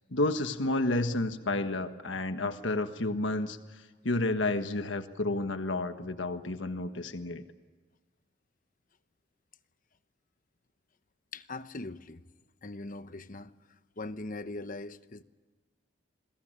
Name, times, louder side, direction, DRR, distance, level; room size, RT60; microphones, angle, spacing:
voice 1, 0.1-3.6 4.0-7.4, left 2 dB, 70° left, 1.5 m, -30 dB
voice 2, 11.3-12.2 12.6-13.6 14.0-15.2, left 2 dB, 45° left, 1.0 m, -40 dB
29.0 x 22.0 x 9.0 m
head